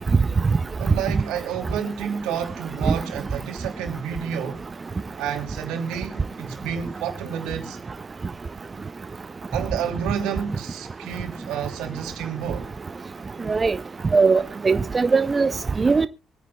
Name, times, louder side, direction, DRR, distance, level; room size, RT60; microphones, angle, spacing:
voice 1, 0.8-4.6 5.2-7.8 9.5-12.7, right 8 dB, 85° right, 2.8 m, -30 dB
voice 2, 14.1-15.5 15.8-16.1, right 4 dB, 35° right, 0.5 m, -19 dB
24.5 x 9.3 x 2.2 m
supercardioid pair, 65°, 0 cm